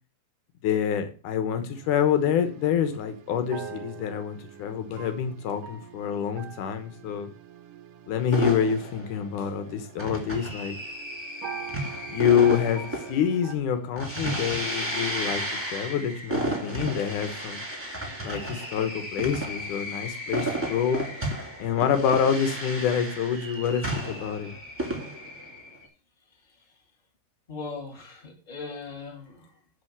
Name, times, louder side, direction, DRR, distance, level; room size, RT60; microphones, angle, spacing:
voice 1, 0.6-7.3 8.1-10.8 12.1-15.4 15.7-17.6 18.2-21.0 21.6-24.5, left 8 dB, 85° left, 8 dB, 2.7 m, -26 dB
sound 1, 1.7-13.6, right 8 dB, 70° right, 1.6 m, -44 dB
sound 2, 8.3-25.8, right 1 dB, 10° right, 2.2 m, -33 dB
voice 2, 26.2-26.9 27.5-29.7, left 4 dB, 15° left, 1 dB, 2.1 m, -40 dB
9.7 x 4.4 x 7.2 m, 0.37 s
omnidirectional pair, 3.5 m